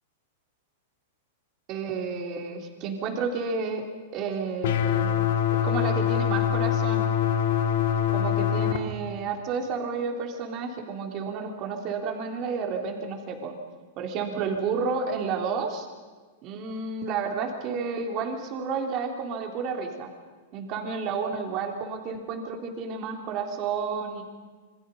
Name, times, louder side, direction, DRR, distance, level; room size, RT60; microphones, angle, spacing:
voice 1, 1.7-3.8 4.1-5.1 5.6-7.1 8.1-13.5 14.0-15.9 16.4-20.1 20.5-24.2, right 5 dB, 30° right, 3 dB, 3.4 m, -31 dB
sound 1, 4.6-8.8, left 9 dB, 55° left, 1.9 m, -24 dB
27.5 x 25.5 x 5.5 m, 1.4 s
supercardioid pair, 165°, 0 cm